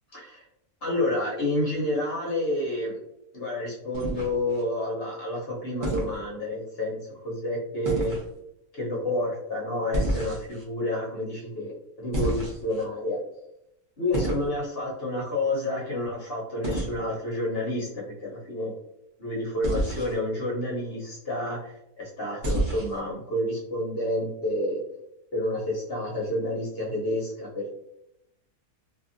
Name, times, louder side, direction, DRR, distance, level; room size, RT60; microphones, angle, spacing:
voice 1, 0.1-0.4 0.8-3.0 3.3-8.1 8.7-13.2 14.0-18.7 19.2-24.8 25.3-27.7, left 1 dB, 50° left, -5 dB, 0.8 m, -29 dB
sound 1, 3.9-4.6 5.8-6.2 7.8-8.3 9.9-10.6 12.1-12.8 14.1-14.5 16.6-16.9 19.6-20.1 22.4-23.0, right 1 dB, 40° right, 0.8 m, -29 dB
2.7 x 2.6 x 2.5 m, 0.82 s
omnidirectional pair, 1.6 m